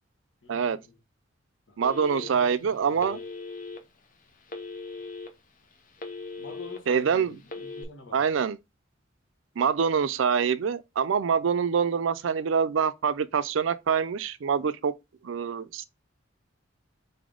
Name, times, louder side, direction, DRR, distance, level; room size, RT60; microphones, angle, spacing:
voice 1, 0.4-1.0 1.7-1.8 2.1-3.2 6.4-8.3, left 4 dB, 85° left, 1.1 m, -45 dB
Telephone, 1.8-2.5 3.0-3.8 4.5-5.3 5.7-6.8 7.4-7.8, left 3 dB, 45° left, 0.8 m, -38 dB
voice 2, 1.8-3.2 6.9-7.3 8.1-8.6 9.6-14.9 15.2-15.8, right 6 dB, 80° right, 0.4 m, -25 dB
4.1 x 3.4 x 3.7 m
head